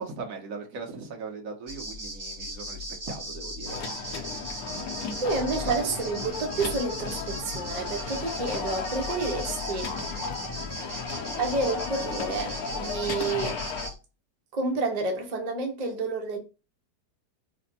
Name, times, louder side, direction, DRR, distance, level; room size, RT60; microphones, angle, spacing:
voice 1, 0.0-3.8 5.6-5.9, right 4 dB, 60° right, 1.2 m, -38 dB
sound 1, 1.7-13.9, equal, 30° right, 1.0 m, -38 dB
sound 2, 3.7-13.9, left 5 dB, 70° left, 1.0 m, -35 dB
voice 2, 5.2-10.0 11.4-13.6 14.5-16.4, right 3 dB, 90° right, 0.3 m, -29 dB
3.3 x 2.1 x 4.0 m
omnidirectional pair, 1.8 m